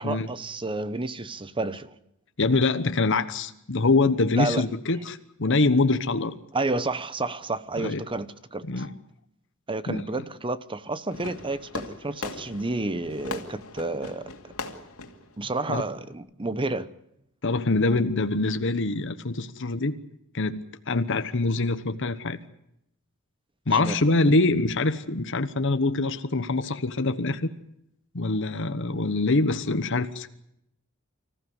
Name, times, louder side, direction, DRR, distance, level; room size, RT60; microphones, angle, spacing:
voice 1, 0.0-1.9 4.3-4.7 6.5-8.8 9.7-14.3 15.4-16.9 23.7-24.0, right 2 dB, 25° right, 0.9 m, -30 dB
voice 2, 2.4-6.3 7.8-8.0 8.6-8.9 9.9-10.0 15.7-15.8 17.4-20.0 20.3-22.4 23.7-27.5 28.1-30.3, left 3 dB, 60° left, 1.2 m, -24 dB
Fireworks, 11.1-16.1, left 3 dB, 85° left, 2.5 m, -39 dB
25.5 x 15.0 x 9.6 m
head